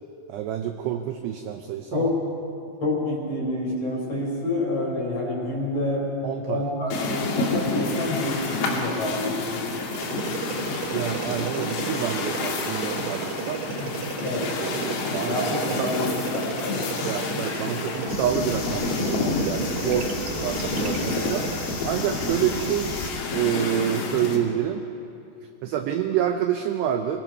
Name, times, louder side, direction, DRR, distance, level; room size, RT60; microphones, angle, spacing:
voice 1, 0.3-2.1 6.2-6.6 10.9-13.7 14.6-15.3 15.8-15.9 17.0-20.1 20.4-21.5 21.8-22.9 23.3-24.8 25.6-27.2, right 10 dB, 80° right, 6 dB, 2.4 m, -27 dB
voice 2, 2.8-6.1 6.4-9.7 13.8-14.5 15.2-17.1, left 1 dB, 30° left, -2 dB, 5.0 m, -28 dB
sound 1, 6.9-24.4, left 3 dB, 80° left, 4.8 m, -29 dB
sound 2, 9.9-21.8, right 6 dB, 65° right, 3.0 m, -35 dB
sound 3, 18.1-23.1, left 3 dB, 50° left, 4.8 m, -35 dB
25.0 x 22.0 x 5.4 m, 2.7 s
omnidirectional pair, 5.9 m